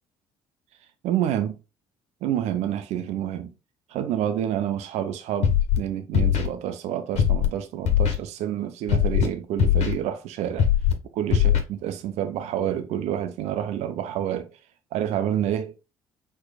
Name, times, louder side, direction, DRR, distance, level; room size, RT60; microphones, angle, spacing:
voice 1, 1.0-1.6 2.2-3.5 3.9-10.7 11.1-14.6 14.9-15.7, right 10 dB, 65° right, 0.6 m, -28 dB
Scratching (performance technique), 5.4-5.8 6.1-6.5 7.1-7.5 7.8-8.1 8.9-9.3 9.6-9.9 10.6-10.9 11.3-11.6, left 9 dB, 65° left, 1.6 m, -20 dB
4.7 x 4.4 x 2.3 m
hypercardioid pair, 70°, 12 cm